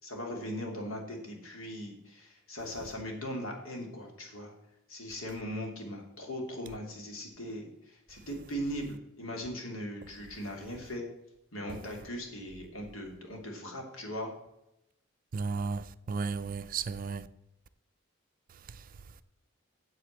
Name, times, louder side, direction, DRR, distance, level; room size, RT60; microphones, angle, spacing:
voice 1, 0.0-4.5 4.9-11.1 11.5-14.3, equal, 80° left, 2.8 m, -39 dB
voice 2, 15.3-17.3 18.7-18.8, right 5 dB, 45° right, 0.5 m, -34 dB
8.3 x 7.7 x 7.2 m
head